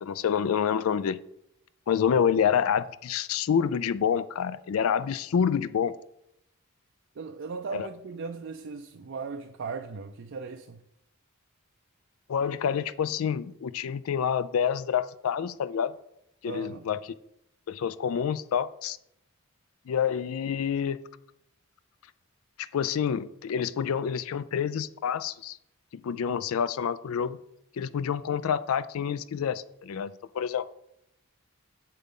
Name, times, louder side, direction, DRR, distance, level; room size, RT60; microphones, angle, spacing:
voice 1, 0.0-1.2 1.9-5.9 7.7-7.9 12.3-15.9 16.4-17.0 17.7-19.0 19.9-21.0 22.6-25.6 26.0-27.4 27.8-30.7, left 7 dB, 75° left, 0.3 m, -27 dB
voice 2, 7.2-10.8 16.4-16.9, right 4 dB, 55° right, 0.4 m, -37 dB
8.1 x 7.5 x 3.7 m
head